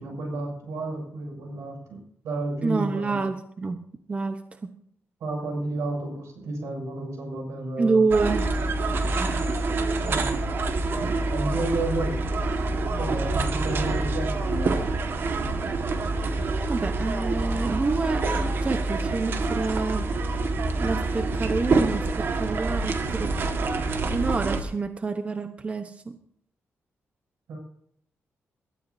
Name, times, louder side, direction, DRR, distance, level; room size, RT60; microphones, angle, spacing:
voice 1, 0.0-3.2 5.2-8.0 10.0-10.4 11.3-12.2 12.9-14.8 27.5-27.6, right 2 dB, 85° right, 2 dB, 6.9 m, -32 dB
voice 2, 2.6-3.8 4.1-4.7 7.8-8.5 16.7-20.2 20.8-23.4 24.1-26.2, right 4 dB, 25° right, 7 dB, 1.0 m, -27 dB
sound 1, 8.1-24.6, right 3 dB, 50° right, 1.7 m, -26 dB
21.5 x 13.0 x 2.8 m, 0.67 s
wide cardioid pair, 145°, 5 cm